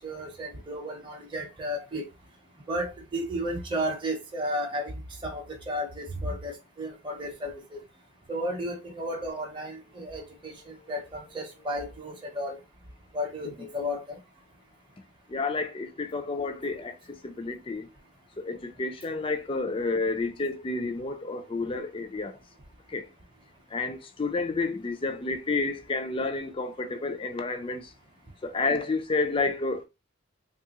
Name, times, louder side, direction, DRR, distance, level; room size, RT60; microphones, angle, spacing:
voice 1, 0.0-2.0 2.7-4.9 5.2-7.8 8.3-12.6 13.1-14.2, equal, 25° right, 0.7 m, -33 dB
voice 2, 15.3-17.9 18.4-22.4 22.9-23.0 23.7-27.9 28.4-29.8, left 3 dB, 25° left, 0.4 m, -30 dB
3.3 x 2.4 x 2.8 m
head